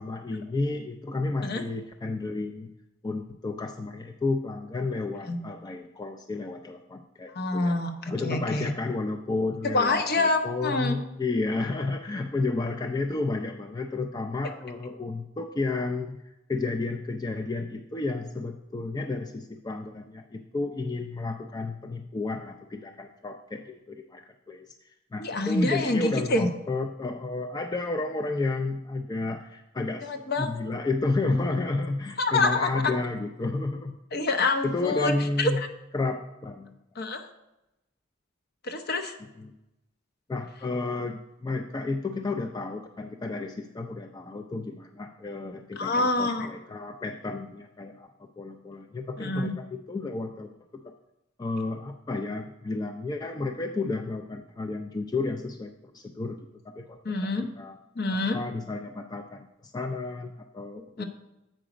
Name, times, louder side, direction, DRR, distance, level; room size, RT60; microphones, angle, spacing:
voice 1, 0.0-2.7 3.0-7.8 8.1-16.2 16.5-34.0 34.6-35.6 35.9-36.7 39.4-39.5 40.3-50.5 50.8-50.9 51.4-56.4 56.8-57.0 57.6-57.8 58.3-61.0, left 3 dB, 20° left, 5 dB, 0.3 m, -32 dB
voice 2, 7.3-8.7 9.7-11.0 25.2-26.5 30.0-30.5 32.2-32.8 34.1-35.1 35.4-35.7 37.0-37.3 38.6-39.2 45.8-46.5 49.2-49.5 57.0-57.5 58.0-58.4 61.0-61.1, left 2 dB, 50° left, 6 dB, 0.7 m, -26 dB
7.7 x 5.0 x 4.9 m, 0.94 s
head